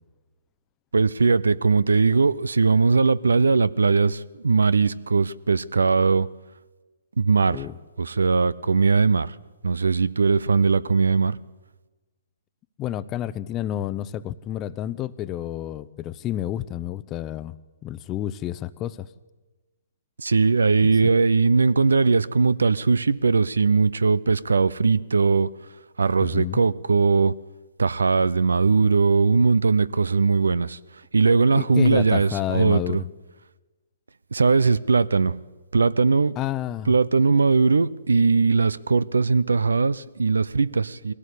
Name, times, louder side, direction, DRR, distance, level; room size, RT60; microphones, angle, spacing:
voice 1, 0.9-6.3 7.2-7.6 8.0-9.3 9.6-11.4 20.2-25.5 26.0-27.3 27.8-30.8 31.1-33.0 34.3-35.3 35.7-36.4 36.9-41.1, right 4 dB, 80° right, 0.7 m, -20 dB
voice 2, 12.8-17.6 17.8-19.1 26.2-26.6 31.5-33.1 36.4-36.9, left 12 dB, 25° left, 0.7 m, -30 dB
21.5 x 17.0 x 8.4 m
figure-of-eight pair, 130°, 0 cm